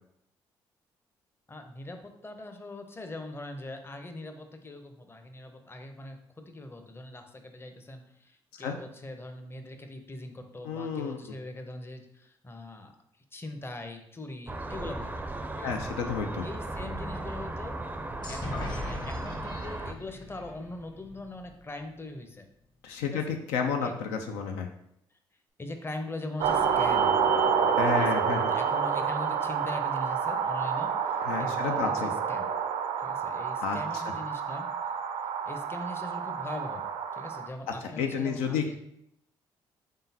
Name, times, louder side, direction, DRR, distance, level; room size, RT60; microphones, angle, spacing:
voice 1, 1.5-6.2 6.5-12.9 13.3-15.3 15.5-15.8 16.4-17.8 18.3-22.5 23.1-23.2 23.8-23.9 25.6-32.5 33.0-34.7 35.4-36.9 37.1-38.8, left 2 dB, 20° left, 6 dB, 0.7 m, -41 dB
voice 2, 10.7-11.2 15.6-16.4 22.8-24.7 27.7-28.5 31.3-32.1 33.6-33.8 38.0-38.8, left 6 dB, 80° left, 4 dB, 0.4 m, -31 dB
sound 1, 14.5-19.9, right 2 dB, 15° right, 0.4 m, -36 dB
sound 2, 18.2-21.9, left 2 dB, 40° left, 1.2 m, -40 dB
sound 3, 26.4-37.5, right 6 dB, 70° right, 0.4 m, -28 dB
3.7 x 3.7 x 2.7 m, 0.75 s
hypercardioid pair, 50°, 10 cm